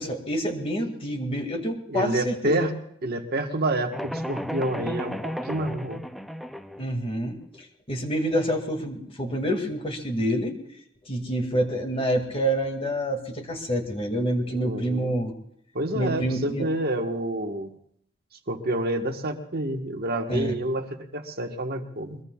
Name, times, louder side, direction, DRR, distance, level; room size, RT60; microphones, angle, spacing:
voice 1, 0.0-2.7 6.8-10.5 11.0-15.3 15.9-16.7 20.3-20.5, equal, 30° left, 3 dB, 2.1 m, -27 dB
voice 2, 1.9-2.7 3.0-6.0 14.5-15.1 15.7-17.7 18.5-22.2, right 1 dB, 50° right, 4 dB, 1.4 m, -28 dB
sound 1, 3.9-6.8, equal, ahead, 0.5 m, -33 dB
23.5 x 21.0 x 2.4 m, 0.69 s
head